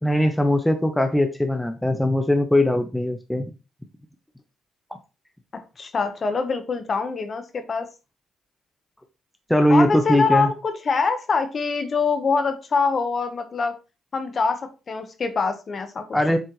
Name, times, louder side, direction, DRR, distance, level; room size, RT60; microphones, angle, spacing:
voice 1, 0.0-3.5 9.5-10.5 16.1-16.4, left 1 dB, 5° left, 6 dB, 0.8 m, -20 dB
voice 2, 5.5-7.9 9.7-13.7 14.1-16.1, left 4 dB, 40° left, 8 dB, 1.3 m, -24 dB
7.7 x 4.2 x 3.3 m, 0.30 s
cardioid pair, 90°, 0 cm